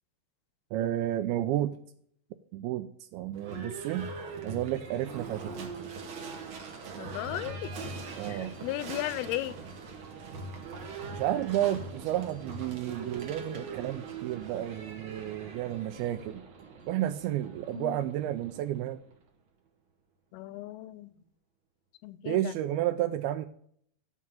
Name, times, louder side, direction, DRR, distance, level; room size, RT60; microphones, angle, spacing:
voice 1, 0.7-1.8 2.5-4.1 4.4-5.7 8.2-8.5 11.1-16.4 16.9-19.0 22.3-23.5, right 13 dB, 85° right, 9 dB, 2.4 m, -31 dB
Livestock farm animals working animals / Bell, 3.3-19.2, right 4 dB, 65° right, 1.3 m, -42 dB
voice 2, 7.0-7.9 8.3-9.6 17.7-18.0 20.3-21.1 22.0-22.5, left 15 dB, 85° left, 17 dB, 2.5 m, -36 dB
11.0 x 4.6 x 7.0 m, 0.64 s
omnidirectional pair, 4.5 m